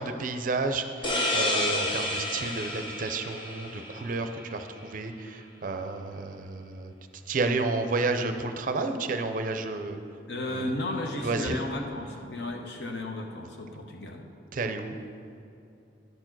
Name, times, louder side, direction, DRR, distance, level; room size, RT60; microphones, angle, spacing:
voice 1, 0.0-6.9 7.3-10.0 10.4-10.7 11.2-11.6 14.5-15.0, right 3 dB, 45° right, 7 dB, 0.5 m, -31 dB
sound 1, 1.0-4.5, left 1 dB, 30° left, 0.8 m, -30 dB
voice 2, 10.3-14.2, left 1 dB, 65° left, 2 dB, 1.0 m, -34 dB
10.5 x 4.5 x 6.0 m, 2.6 s
head